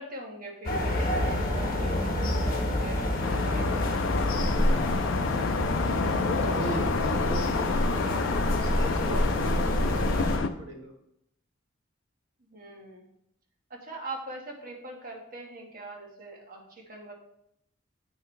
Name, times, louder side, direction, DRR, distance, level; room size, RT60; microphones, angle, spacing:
voice 1, 0.0-4.6 12.5-13.0 13.7-17.1, right 2 dB, 45° right, 0 dB, 1.4 m, -42 dB
sound 1, 0.6-10.4, left 1 dB, 45° left, 1.2 m, -27 dB
sound 2, 3.2-10.5, left 5 dB, 65° left, 0.4 m, -30 dB
voice 2, 6.2-8.2 8.6-10.9, equal, 80° right, 1 dB, 1.7 m, -37 dB
8.8 x 6.5 x 3.2 m, 0.77 s
head